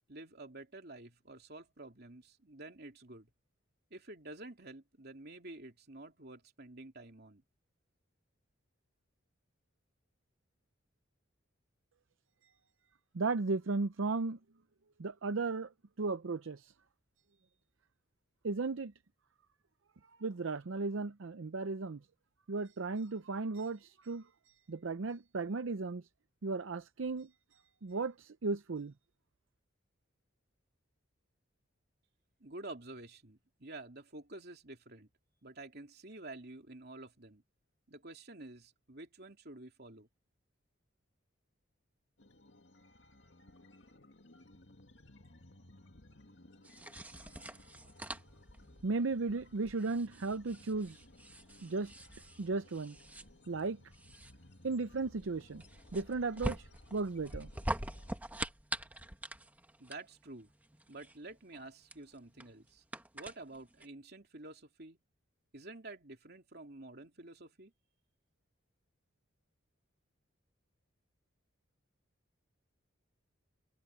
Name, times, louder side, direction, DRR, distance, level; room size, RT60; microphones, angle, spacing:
voice 1, 0.1-3.3 3.9-7.4 32.4-35.1 35.4-37.4 37.9-40.1 59.8-60.5 60.9-62.8 63.1-65.0 65.5-67.7, right 2 dB, 50° right, 3.1 m, -50 dB
voice 2, 13.1-14.4 15.0-15.7 16.0-16.7 18.4-18.9 20.2-22.0 22.5-24.2 24.7-26.0 26.4-27.3 27.8-28.9 48.8-51.0 51.6-51.9 52.4-52.9 53.5-53.8 54.6-55.6 55.9-57.5, right 3 dB, 70° right, 0.6 m, -35 dB
sound 1, 42.2-58.2, left 1 dB, 60° left, 2.5 m, -60 dB
sound 2, 46.6-63.9, right 1 dB, 10° right, 1.2 m, -45 dB
head